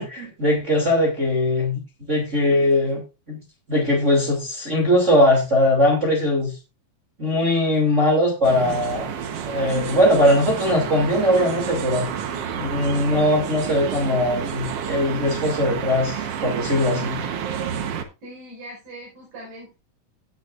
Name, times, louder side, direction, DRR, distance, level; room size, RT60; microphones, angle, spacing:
voice 1, 0.0-1.8 2.1-3.0 3.3-3.4 3.7-6.5 7.2-9.1 9.4-12.1 12.6-17.2, left 1 dB, 20° right, -1 dB, 2.8 m, -20 dB
sound 1, 8.4-18.0, right 8 dB, 60° right, 1.8 m, -29 dB
voice 2, 18.2-19.7, right 1 dB, 75° right, -5 dB, 7.0 m, -40 dB
18.0 x 7.1 x 2.5 m, 0.29 s
omnidirectional pair, 3.9 m